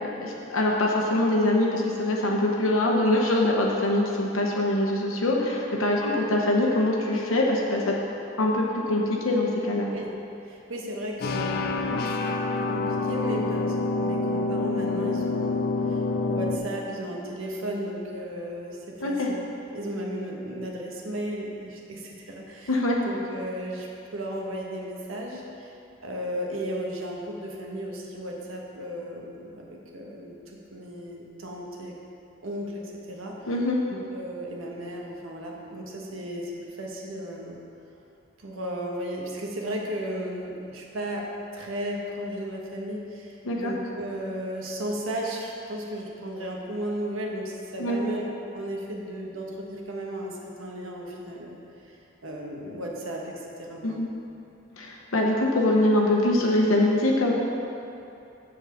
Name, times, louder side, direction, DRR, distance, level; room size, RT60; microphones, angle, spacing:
voice 1, 0.0-8.0 8.4-9.9 19.0-19.3 22.7-23.0 33.5-33.8 43.4-43.7 47.8-48.0 53.8-54.1 54.8-57.3, left 1 dB, 90° left, -1 dB, 0.9 m, -23 dB
voice 2, 10.4-19.4 19.7-22.8 23.0-25.7 26.0-32.0 32.4-33.6 33.9-37.6 38.4-41.3 41.5-48.3 48.5-52.0 52.2-54.0, equal, 85° right, -1 dB, 1.2 m, -35 dB
sound 1, 11.2-16.6, left 3 dB, 45° left, 0.4 m, -27 dB
7.6 x 4.6 x 6.8 m, 2.8 s
head